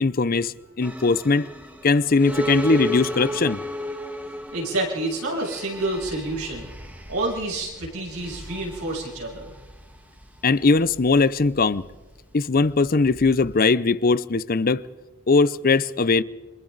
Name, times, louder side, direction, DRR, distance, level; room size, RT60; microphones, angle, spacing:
voice 1, 0.0-1.5 1.8-3.6 10.4-11.8 12.3-14.8 15.3-16.2, left 3 dB, 40° left, 0.6 m, -20 dB
sound 1, 0.8-13.6, equal, 5° right, 1.4 m, -34 dB
voice 2, 4.5-6.7 7.1-9.5, right 2 dB, 85° right, 7.6 m, -28 dB
28.5 x 25.5 x 4.0 m
head